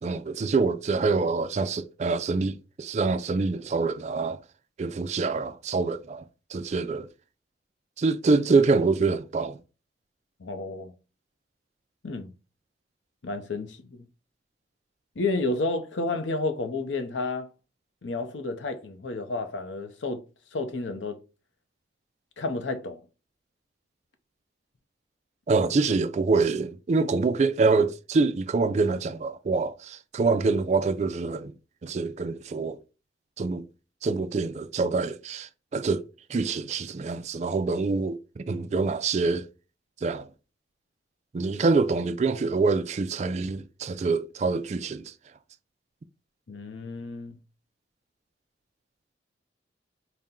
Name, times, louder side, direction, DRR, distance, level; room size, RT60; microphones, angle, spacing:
voice 1, 0.0-4.4 4.8-6.3 6.5-7.1 8.0-9.6 25.5-31.5 31.8-32.8 33.4-33.7 34.0-36.0 36.3-39.5 40.0-40.3 41.3-45.1, right 4 dB, 40° right, 0.3 m, -25 dB
voice 2, 10.4-10.9 12.0-12.3 13.2-14.1 15.2-17.5 18.0-20.2 20.5-21.2 22.4-23.0 46.5-47.4, left 3 dB, 90° left, 0.7 m, -31 dB
4.2 x 2.1 x 3.7 m
head